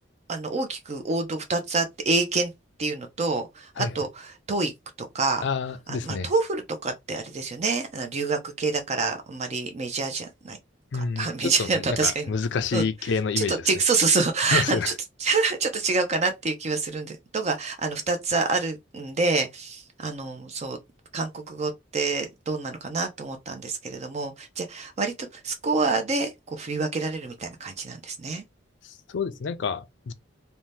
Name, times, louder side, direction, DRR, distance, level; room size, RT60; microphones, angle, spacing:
voice 1, 0.3-2.5 2.8-4.7 5.0-5.5 5.9-10.6 10.9-12.3 12.7-12.8 13.4-14.9 15.2-20.8 21.1-28.4, right 4 dB, 35° right, 0.5 m, -27 dB
voice 2, 5.4-6.3 10.9-13.6 14.5-14.9 28.8-30.1, left 5 dB, 65° left, 0.4 m, -28 dB
2.7 x 2.1 x 3.2 m
head